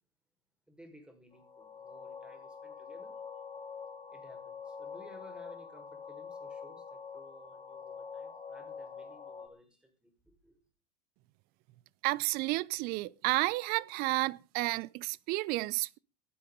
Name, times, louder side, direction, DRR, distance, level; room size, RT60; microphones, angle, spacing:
voice 1, 0.7-3.1 4.1-10.6, equal, 5° right, 6.6 m, -57 dB
sound 1, 1.3-9.5, left 6 dB, 20° left, 3.9 m, -46 dB
voice 2, 12.0-16.0, right 21 dB, 50° right, 0.7 m, -31 dB
17.0 x 10.0 x 5.3 m
figure-of-eight pair, 80°, 21 cm